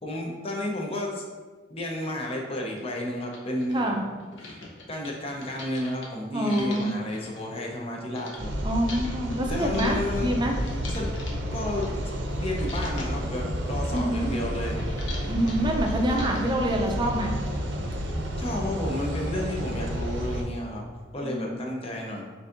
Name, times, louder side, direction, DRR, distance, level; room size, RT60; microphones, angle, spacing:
voice 1, 0.0-1.2 1.7-3.9 4.3-8.5 9.5-10.4 10.6-11.1 11.5-12.0 12.4-14.8 18.4-20.9 21.1-22.2, left 1 dB, 30° left, -1 dB, 0.7 m, -32 dB
sound 1, 2.1-2.2 2.8-2.9 3.2-8.4 8.9-12.3 12.6-13.2 13.6-16.6, left 2 dB, 65° left, 0.8 m, -43 dB
voice 2, 3.7-4.0 6.3-6.9 8.6-10.5 13.9-14.3 15.3-17.3 21.2-21.7, right 1 dB, 25° right, 2 dB, 0.5 m, -26 dB
sound 2, 8.4-20.4, equal, 65° right, 0.6 m, -30 dB
6.8 x 2.6 x 2.5 m, 1.4 s
head